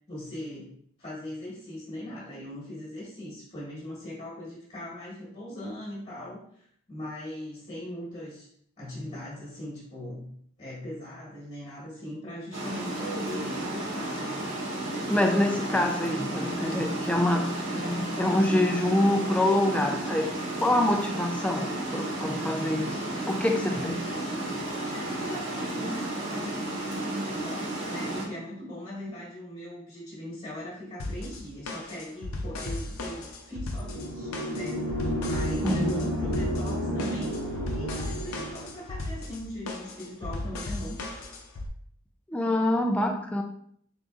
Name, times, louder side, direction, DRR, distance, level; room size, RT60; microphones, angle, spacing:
voice 1, 0.1-0.7 1.0-8.5 8.8-10.3 10.6-14.1 24.6-41.0, left 1 dB, 30° left, -7 dB, 1.3 m, -40 dB
Water, 12.5-28.2, right 1 dB, 70° right, 1.5 m, -33 dB
voice 2, 15.1-20.3 20.6-23.0 23.3-24.0 35.6-36.0 42.3-43.4, left 1 dB, 5° left, 3 dB, 0.3 m, -26 dB
sound 1, 31.0-41.7, left 2 dB, 85° left, 0.6 m, -36 dB
sound 2, 33.7-38.7, equal, 50° right, 1.1 m, -31 dB
3.8 x 3.8 x 2.4 m, 0.64 s
head